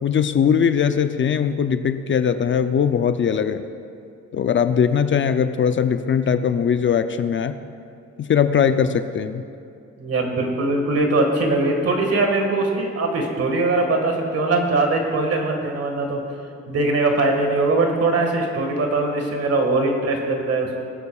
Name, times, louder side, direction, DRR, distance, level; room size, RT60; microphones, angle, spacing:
voice 1, 0.0-3.6 4.3-7.5 8.2-9.4, left 7 dB, 40° left, 9 dB, 0.5 m, -20 dB
voice 2, 10.0-16.2 16.7-20.8, right 2 dB, 55° right, 2 dB, 1.8 m, -21 dB
21.0 x 8.2 x 2.4 m, 2.5 s
cardioid pair, 90°, 30 cm